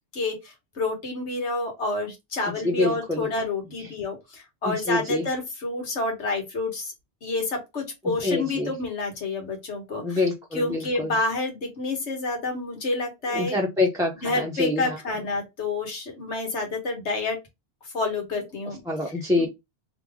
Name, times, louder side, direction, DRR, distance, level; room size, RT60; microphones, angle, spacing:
voice 1, 0.1-6.9 7.2-10.2 10.5-13.5 14.2-17.4 17.9-18.8 19.4-19.5, left 2 dB, 85° left, 1.7 m, -29 dB
voice 2, 2.6-3.3 4.6-5.3 8.0-8.7 10.0-11.2 13.3-15.0 18.9-19.5, left 2 dB, 5° right, 0.8 m, -26 dB
3.4 x 3.3 x 3.6 m
omnidirectional pair, 1.1 m